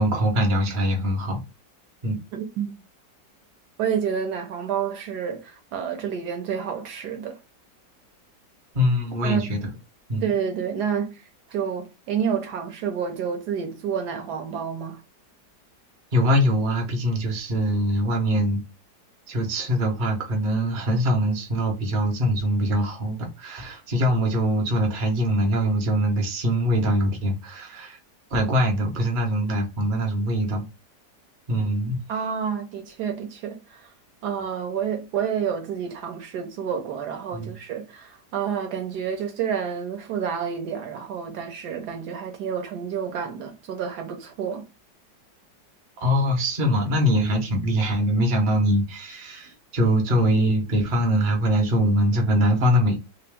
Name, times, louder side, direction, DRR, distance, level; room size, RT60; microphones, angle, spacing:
voice 1, 0.0-1.4 2.0-2.2 8.7-9.6 10.1-10.3 16.1-18.6 19.3-28.0 28.3-30.7 31.5-32.0 37.3-37.5 46.0-52.9, equal, 40° right, 0.8 m, -23 dB
voice 2, 2.3-2.7 3.8-7.4 9.2-9.7 10.2-15.0 32.1-33.9 34.2-44.6, right 7 dB, 70° right, 1.2 m, -29 dB
3.0 x 2.9 x 3.4 m
omnidirectional pair, 1.9 m